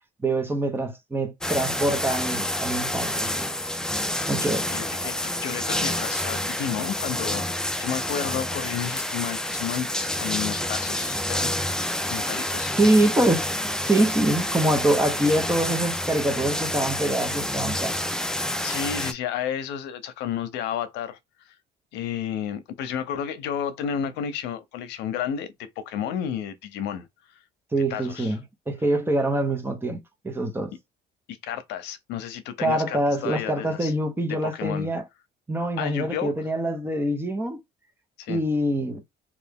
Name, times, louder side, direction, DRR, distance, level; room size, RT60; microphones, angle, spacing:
voice 1, 0.2-3.5 4.3-4.7 12.8-13.5 13.8-18.0 27.7-30.7 32.6-35.0 35.5-37.6 38.3-39.0, right 1 dB, 15° right, 0.9 m, -24 dB
sound 1, 1.4-19.1, left 1 dB, 5° left, 0.5 m, -28 dB
voice 2, 4.7-11.5 12.1-12.8 18.6-21.2 21.4-21.5 21.9-27.1 27.9-28.4 31.3-33.9 34.3-34.9 35.8-36.3 38.2-38.4, left 9 dB, 85° left, 0.7 m, -32 dB
3.3 x 2.4 x 3.6 m
cardioid pair, 110°, 17 cm